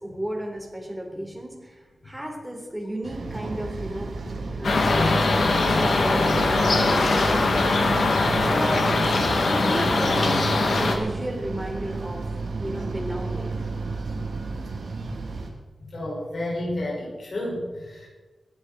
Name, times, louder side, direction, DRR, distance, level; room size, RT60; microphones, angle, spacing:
voice 1, 0.0-5.2 5.6-7.8 8.4-8.9 9.4-12.2 12.6-13.6, right 1 dB, 5° right, -1 dB, 4.1 m, -33 dB
sound 1, 3.0-15.5, right 3 dB, 90° right, 2.7 m, -32 dB
sound 2, 4.6-11.0, left 3 dB, 80° left, 2.4 m, -21 dB
voice 2, 15.9-18.1, left 1 dB, 60° left, -3 dB, 5.5 m, -31 dB
21.5 x 12.5 x 4.4 m, 1.2 s
wide cardioid pair, 70°, 0 cm